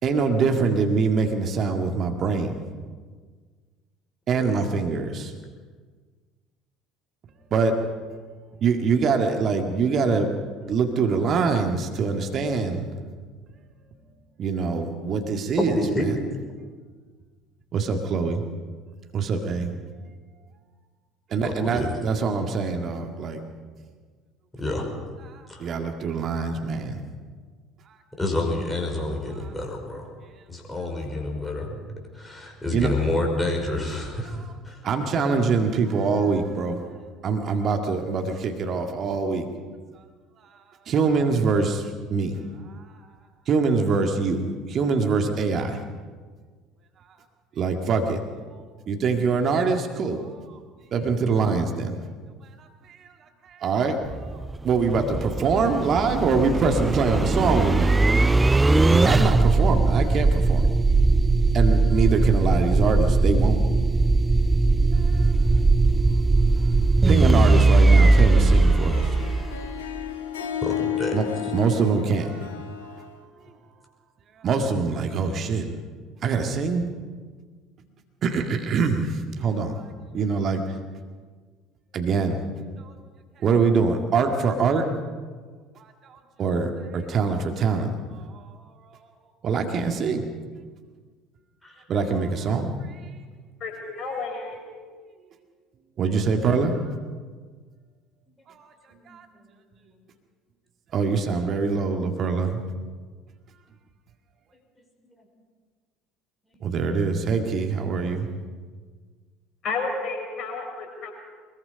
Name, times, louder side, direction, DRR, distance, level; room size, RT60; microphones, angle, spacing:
voice 1, 0.0-2.6 4.3-5.3 7.5-7.7 8.6-10.3 10.7-12.9 14.4-16.1 17.7-18.4 19.1-19.7 21.3-23.4 25.3-27.0 32.7-32.9 34.8-36.8 37.2-39.5 40.9-42.4 42.8-42.9 43.5-45.8 47.6-48.2 48.5-48.6 48.9-50.6 50.9-52.0 52.6-53.1 53.4-54.4 54.6-58.0 58.9-60.7 61.5-63.6 64.9-65.3 67.1-69.2 71.1-71.3 71.5-72.5 74.4-75.7 76.2-76.9 78.2-79.9 80.1-80.8 81.9-82.4 82.9-83.0 83.4-84.9 85.8-87.9 88.2-88.6 89.4-90.3 91.9-93.0 96.0-96.9 98.5-98.7 99.1-99.2 100.9-102.6 106.6-108.3, right 4 dB, 40° right, 4 dB, 2.0 m, -24 dB
voice 2, 4.3-4.7 15.6-16.1 21.4-21.9 24.6-24.9 25.5-25.7 28.2-30.1 30.5-31.8 32.1-34.8 70.6-71.2 91.6-91.8 98.9-99.2 105.0-105.1 106.5-106.7, left 2 dB, 10° left, 1 dB, 5.5 m, -28 dB
sound 1, 54.0-70.0, right 3 dB, 15° right, 0.5 m, -19 dB
Harp, 67.9-73.2, left 9 dB, 75° left, 1.4 m, -33 dB
voice 3, 94.0-94.6 109.6-111.1, left 4 dB, 45° left, 2 dB, 5.5 m, -31 dB
23.0 x 21.5 x 5.3 m, 1.5 s
figure-of-eight pair, 60°, 0 cm